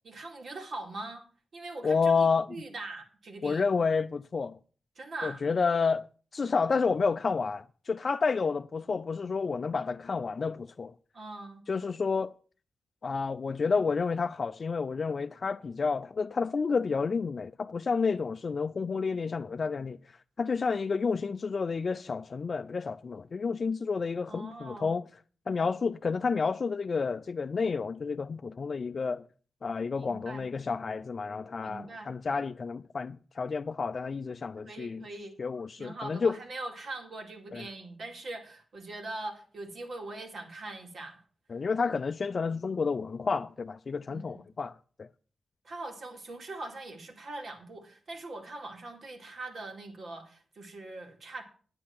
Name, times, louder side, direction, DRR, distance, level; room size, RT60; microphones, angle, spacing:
voice 1, 0.0-1.3 1.5-3.7 5.0-5.4 11.1-11.6 24.3-24.9 29.9-30.5 31.6-32.1 34.6-35.4 35.8-41.2 44.1-44.4 45.6-51.4, right 2 dB, 65° right, 2.3 m, -42 dB
voice 2, 1.8-2.5 3.4-4.6 5.2-6.1 6.3-10.9 11.7-12.3 13.0-20.0 20.4-25.1 25.5-29.2 29.6-35.1 35.4-36.4 37.5-37.6 41.5-45.1, left 5 dB, 50° left, 0.4 m, -30 dB
9.7 x 8.4 x 5.8 m
cardioid pair, 90°, 0 cm